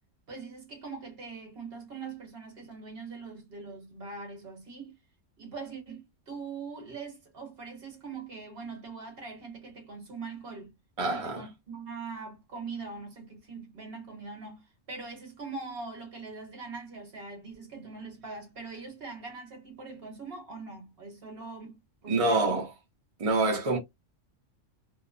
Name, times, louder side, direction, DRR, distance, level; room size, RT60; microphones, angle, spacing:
voice 1, 0.3-5.0 5.4-10.7 11.0-22.5, right 4 dB, 50° right, 1.2 m, -42 dB
voice 2, 11.0-11.4 22.1-22.6 23.2-23.8, right 2 dB, 35° right, 0.6 m, -26 dB
2.8 x 2.0 x 2.4 m
omnidirectional pair, 1.3 m